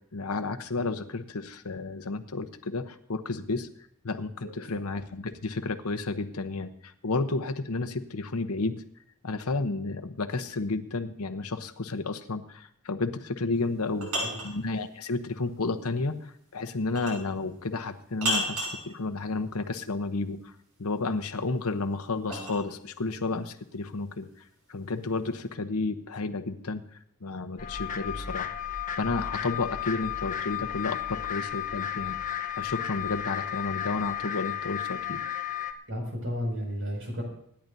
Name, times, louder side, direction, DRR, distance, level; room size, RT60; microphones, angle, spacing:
voice 1, 0.1-3.7 4.0-8.8 9.2-14.1 14.4-20.5 20.8-24.3 24.7-28.5 29.0-32.2 32.6-35.2, left 3 dB, 75° left, 9 dB, 0.9 m, -32 dB
sound 1, 13.6-14.6 17.0-17.3 18.2-18.8 21.1-22.6, equal, 85° right, 6.9 m, -32 dB
voice 2, 13.9-14.4 35.9-37.2, equal, 60° right, 0 dB, 6.1 m, -33 dB
sound 2, 27.6-35.7, left 10 dB, 35° left, 1.0 m, -33 dB
26.0 x 10.5 x 2.7 m, 0.69 s
head